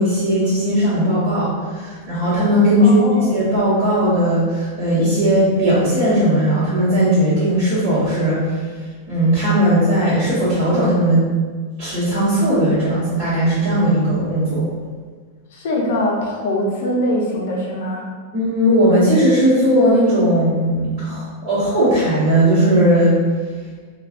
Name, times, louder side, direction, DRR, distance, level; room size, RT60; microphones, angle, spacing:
voice 1, 0.0-3.0 3.3-8.4 9.1-11.2 11.8-14.6 18.3-23.2, equal, 30° right, -16 dB, 1.3 m, -17 dB
voice 2, 2.8-3.3 15.5-18.0, left 1 dB, 60° left, -1 dB, 0.6 m, -22 dB
3.3 x 2.3 x 2.5 m, 1.5 s
supercardioid pair, 165°, 0 cm